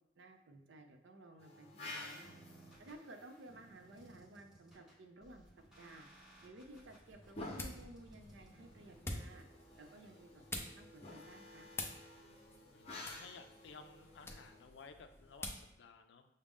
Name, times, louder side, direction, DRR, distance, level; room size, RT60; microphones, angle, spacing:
voice 1, 0.2-2.3 2.8-5.5 5.8-6.1 6.4-9.4 9.8-10.4 10.7-11.7, right 1 dB, 75° right, 5 dB, 0.5 m, -56 dB
sound 1, 1.4-4.5 6.4-15.4, left 2 dB, 35° left, 0.8 m, -53 dB
sound 2, 2.2-10.2, right 1 dB, 5° right, 0.8 m, -63 dB
sound 3, 6.6-15.7, left 2 dB, 15° left, 0.4 m, -49 dB
voice 2, 12.7-16.3, left 5 dB, 70° left, 8 dB, 0.4 m, -56 dB
6.1 x 2.1 x 3.5 m, 0.84 s
head